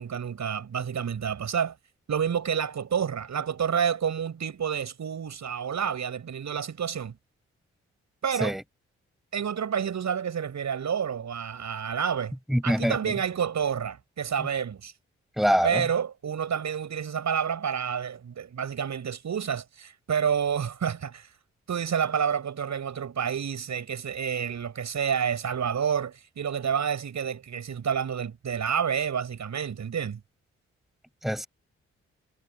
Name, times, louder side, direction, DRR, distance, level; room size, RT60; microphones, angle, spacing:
voice 1, 0.0-1.7 2.1-7.2 8.2-8.6 9.3-12.3 12.6-14.9 15.6-21.3 21.7-30.2, right 7 dB, 65° right, 7.3 m, -29 dB
voice 2, 12.5-13.1 15.4-15.8 31.2-31.5, equal, ahead, 7.3 m, -24 dB
supercardioid pair, 45°, 30 cm